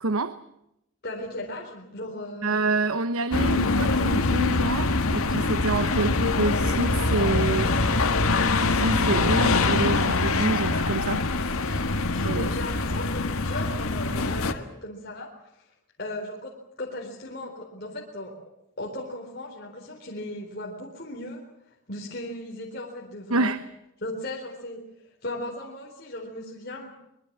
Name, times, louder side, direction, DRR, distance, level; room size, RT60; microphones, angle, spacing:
voice 1, 0.0-0.4 2.4-11.2 11.6-11.9 12.2-12.5 23.3-23.7, right 3 dB, 85° right, 12 dB, 1.0 m, -28 dB
voice 2, 1.0-2.6 5.9-6.2 12.3-15.3 16.0-16.5 16.8-18.3 18.8-21.4 21.9-23.5 24.0-24.8 25.2-26.9, left 1 dB, 45° left, -1 dB, 4.1 m, -36 dB
sound 1, 3.3-14.5, left 3 dB, 85° left, 1.7 m, -24 dB
24.5 x 21.5 x 7.5 m, 0.83 s
head